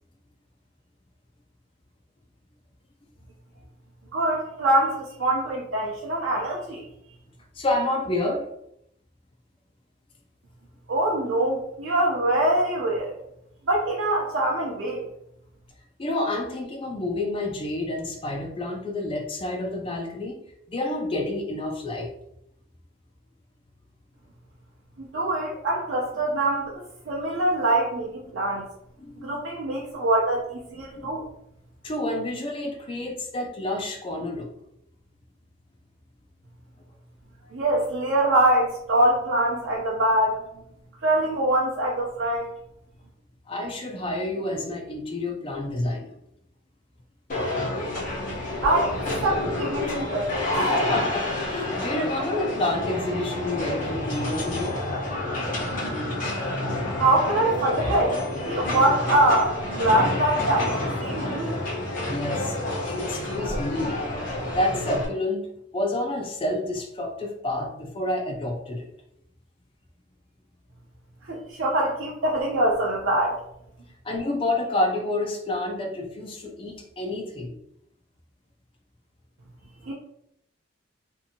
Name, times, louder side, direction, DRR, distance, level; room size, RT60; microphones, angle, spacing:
voice 1, 4.1-6.9 10.9-13.1 13.7-15.1 25.0-28.7 29.2-30.5 30.7-31.2 37.5-40.4 41.0-42.5 48.6-48.9 49.2-50.5 56.9-58.2 58.5-61.5 71.3-73.3 79.9-80.0, right 1 dB, 80° right, -4 dB, 0.5 m, -24 dB
voice 2, 7.6-8.5 16.0-20.4 20.7-22.1 29.0-29.3 31.0-31.1 31.8-34.5 43.5-46.1 50.8-54.8 62.0-62.5 62.8-64.0 64.5-65.5 65.7-68.9 74.0-77.5, left 1 dB, 25° left, 1 dB, 0.4 m, -29 dB
sound 1, 47.3-65.1, left 1 dB, 45° left, 0.8 m, -29 dB
sound 2, 51.5-52.9 54.5-55.6 57.2-58.8, left 2 dB, 80° left, 0.8 m, -36 dB
2.7 x 2.6 x 2.7 m, 0.76 s
head